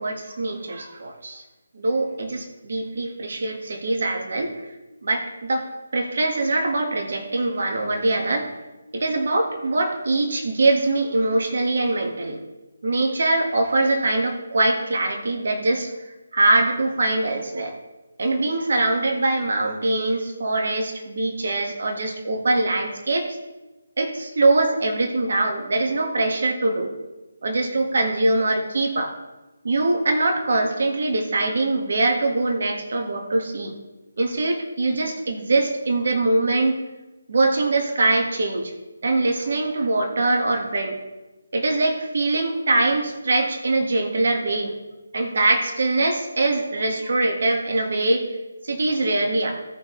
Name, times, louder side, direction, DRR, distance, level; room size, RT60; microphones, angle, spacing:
voice 1, 0.0-1.4 1.7-4.6 5.0-8.5 8.9-12.4 12.8-15.9 16.3-17.7 18.2-23.4 24.0-26.9 27.4-29.2 29.6-33.8 34.2-36.8 37.3-38.7 39.0-41.0 41.5-44.7 45.1-48.3 48.6-49.6, right 2 dB, 55° right, 3 dB, 1.7 m, -23 dB
16.5 x 5.6 x 3.2 m, 1.1 s
figure-of-eight pair, 150°, 0 cm